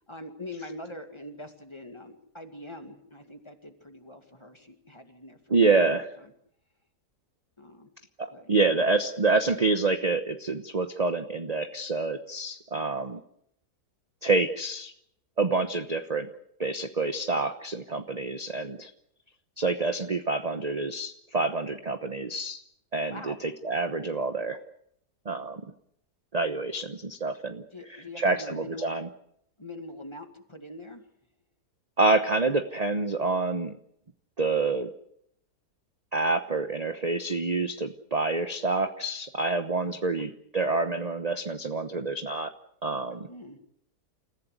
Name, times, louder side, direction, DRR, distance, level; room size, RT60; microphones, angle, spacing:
voice 1, 0.1-5.7 7.6-7.9 8.3-8.8 23.1-23.4 27.7-29.0 29.6-31.0 39.8-40.1 43.3-43.6, left 1 dB, 15° left, 6 dB, 2.2 m, -43 dB
voice 2, 5.5-6.1 8.2-13.2 14.2-14.9 15.4-16.3 16.6-18.9 19.6-22.6 22.9-24.6 25.2-25.6 26.3-27.6 28.2-29.1 32.0-33.8 34.4-34.9 36.1-42.5 42.8-43.3, right 3 dB, 30° right, 8 dB, 1.0 m, -27 dB
29.0 x 15.5 x 8.1 m, 0.73 s
omnidirectional pair, 1.7 m